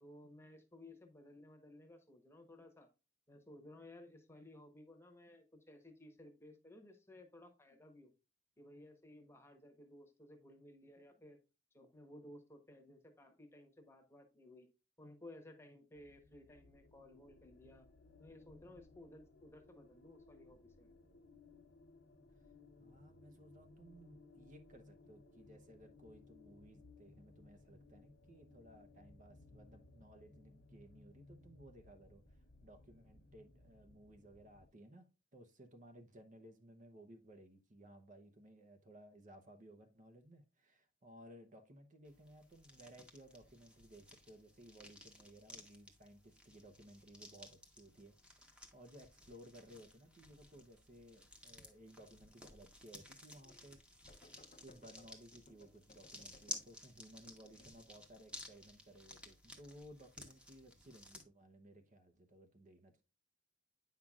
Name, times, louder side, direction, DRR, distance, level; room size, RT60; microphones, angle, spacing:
voice 1, 0.0-2.9 3.3-8.1 8.6-11.4 11.7-14.7 15.0-17.9 18.2-20.9, left 1 dB, 15° left, 1.1 m, -58 dB
sound 1, 15.9-34.7, left 2 dB, 75° left, 0.9 m, -62 dB
voice 2, 22.8-53.8 54.1-63.0, right 1 dB, 40° right, 0.8 m, -59 dB
sound 2, 42.1-61.2, left 1 dB, 5° right, 1.0 m, -55 dB
sound 3, 53.4-53.7 54.1-56.8 57.2-58.0, left 2 dB, 40° left, 0.6 m, -65 dB
8.7 x 5.7 x 2.4 m
head